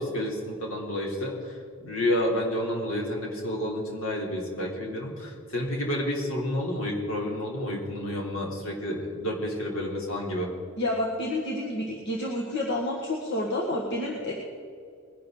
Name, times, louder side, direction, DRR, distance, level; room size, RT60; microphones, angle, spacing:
voice 1, 0.0-1.6 1.8-10.5, left 1 dB, 75° left, -2 dB, 3.5 m, -30 dB
voice 2, 10.8-14.3, left 1 dB, 55° left, -2 dB, 1.7 m, -29 dB
21.0 x 11.5 x 3.9 m, 2.3 s
head